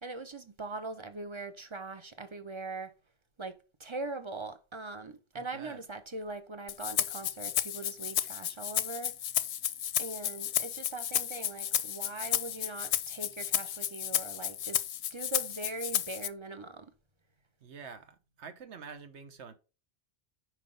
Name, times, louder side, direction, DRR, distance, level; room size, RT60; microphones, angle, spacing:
voice 1, 0.0-2.9 3.4-9.1 10.0-14.8 15.1-16.9, right 3 dB, 30° right, 0.7 m, -41 dB
voice 2, 5.3-5.8 17.6-19.5, right 6 dB, 70° right, 1.3 m, -47 dB
Rattle (instrument), 6.7-16.3, left 11 dB, 65° left, 0.8 m, -32 dB
5.9 x 4.7 x 5.4 m
omnidirectional pair, 1.2 m